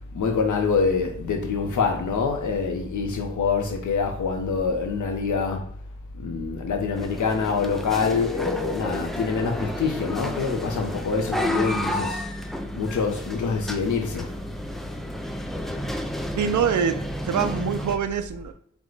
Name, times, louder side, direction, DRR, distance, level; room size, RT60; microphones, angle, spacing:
voice 1, 0.1-5.6 6.1-12.2 12.7-14.3, left 5 dB, 80° left, 0.9 m, -25 dB
sound 1, 7.0-18.0, left 1 dB, ahead, 0.3 m, -31 dB
voice 2, 16.4-18.5, right 7 dB, 75° right, 0.5 m, -25 dB
4.8 x 2.2 x 3.9 m
wide cardioid pair, 145°, 30 cm